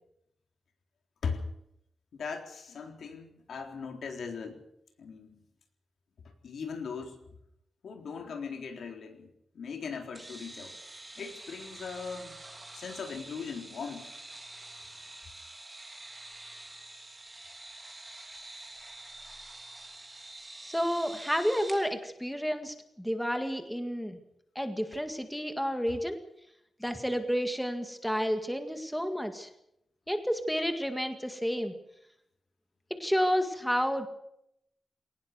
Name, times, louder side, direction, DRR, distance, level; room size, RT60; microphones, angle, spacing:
voice 1, 2.1-4.6 5.0-5.4 6.4-7.2 7.8-9.3 9.5-10.8 11.2-12.4 12.7-14.1, left 5 dB, 80° left, 4 dB, 3.9 m, -39 dB
sound 1, 10.1-21.9, right 2 dB, 15° right, 2.9 m, -47 dB
voice 2, 20.6-24.2 24.6-26.2 26.8-29.5 30.1-31.7 32.9-34.1, equal, ahead, 6 dB, 1.9 m, -30 dB
22.5 x 19.0 x 6.8 m, 0.76 s
wide cardioid pair, 180°, 0 cm